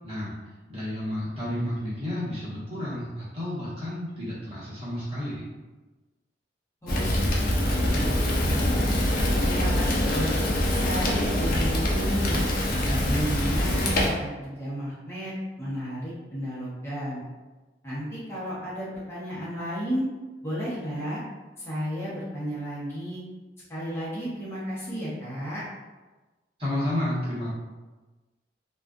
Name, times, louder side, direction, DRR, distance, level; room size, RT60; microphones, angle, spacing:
voice 1, 0.7-5.4 26.6-27.5, left 1 dB, 35° right, -10 dB, 1.1 m, -31 dB
voice 2, 6.8-8.9 9.4-10.3 10.7-12.4 12.8-15.3 15.6-17.2 17.8-20.1 20.4-21.2 21.6-23.2 23.7-25.6, equal, 15° left, -9 dB, 0.9 m, -33 dB
Fire, 6.9-14.1, left 1 dB, 55° left, 0.4 m, -24 dB
2.4 x 2.3 x 2.3 m, 1.2 s
head